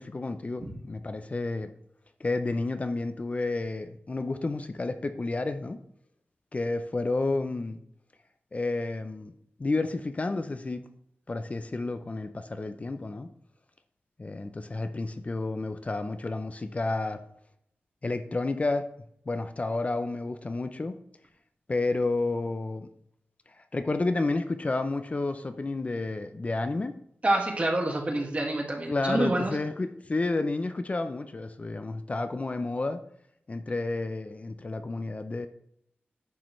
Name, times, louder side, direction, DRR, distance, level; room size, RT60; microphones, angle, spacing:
voice 1, 0.0-1.7 2.2-5.8 6.5-7.8 8.5-9.3 9.6-10.8 11.3-13.3 14.2-17.2 18.0-18.9 19.3-21.0 21.7-22.9 23.7-27.0 28.9-33.0 33.5-35.5, left 2 dB, 35° left, 9 dB, 0.5 m, -30 dB
voice 2, 27.2-29.5, right 2 dB, 35° right, 0 dB, 2.0 m, -27 dB
10.0 x 6.6 x 3.2 m, 0.72 s
wide cardioid pair, 110°, 4 cm